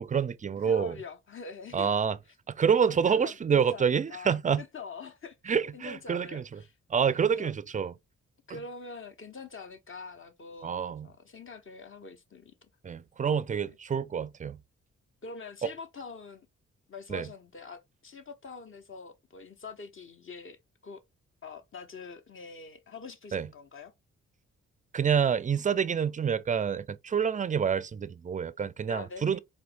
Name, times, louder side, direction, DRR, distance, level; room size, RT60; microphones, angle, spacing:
voice 1, 0.0-1.0 1.7-2.2 2.5-4.6 5.5-6.6 6.9-7.9 8.5-8.6 10.6-11.1 12.8-14.6 17.1-17.3 23.3-23.5 24.9-29.4, right 7 dB, 25° right, 0.3 m, -27 dB
voice 2, 0.6-1.9 2.8-3.4 3.7-6.8 7.0-7.5 8.5-10.8 11.0-12.5 13.6-13.8 15.2-16.5 16.9-20.6 20.8-21.0 21.4-23.9 28.9-29.4, left 4 dB, 40° left, 0.9 m, -44 dB
4.2 x 2.1 x 2.5 m
supercardioid pair, 45°, 31 cm